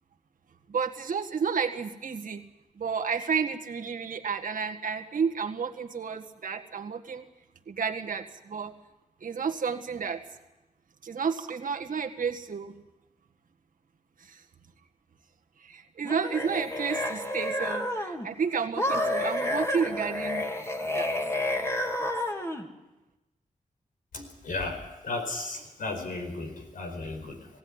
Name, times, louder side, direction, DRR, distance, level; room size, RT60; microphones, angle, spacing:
voice 1, 0.7-2.4 2.8-7.2 7.7-8.8 9.2-10.2 11.0-12.7 14.2-14.4 15.6-20.4 20.9-21.1, right 6 dB, 80° right, 5 dB, 1.7 m, -31 dB
sound 1, 16.0-18.3 18.8-22.7, left 1 dB, 20° left, 2.9 m, -30 dB
voice 2, 24.1-27.5, left 3 dB, 85° left, 4 dB, 4.7 m, -35 dB
20.5 x 16.0 x 9.7 m, 1.0 s
cardioid pair, 60°, 14 cm